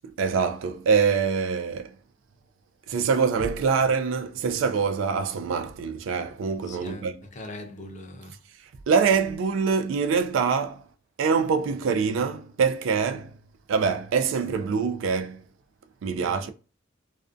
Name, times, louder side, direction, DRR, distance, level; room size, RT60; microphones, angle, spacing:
voice 1, 0.2-1.9 2.9-7.2 8.9-10.8 11.2-13.4 13.7-15.4 16.0-16.5, right 5 dB, 80° right, 0.3 m, -24 dB
voice 2, 6.7-8.5 16.2-16.5, left 1 dB, 40° left, 0.5 m, -41 dB
2.4 x 2.1 x 2.5 m
head